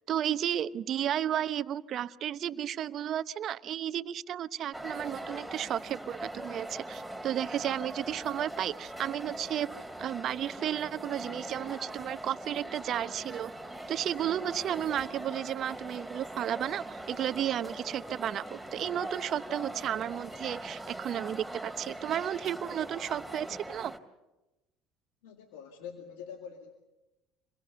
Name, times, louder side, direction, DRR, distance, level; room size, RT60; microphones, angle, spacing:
voice 1, 0.1-9.7 10.0-13.5 13.9-23.9, right 10 dB, 55° right, 14 dB, 0.8 m, -33 dB
sound 1, 4.7-24.0, right 1 dB, ahead, 2.8 m, -41 dB
sound 2, 17.1-17.5 18.0-19.0 19.7-20.4 21.1-21.4, left 2 dB, 25° left, 2.4 m, -58 dB
voice 2, 25.2-26.7, left 7 dB, 80° left, 4 dB, 2.1 m, -45 dB
27.5 x 22.0 x 6.9 m, 1.0 s
hypercardioid pair, 75°, 0 cm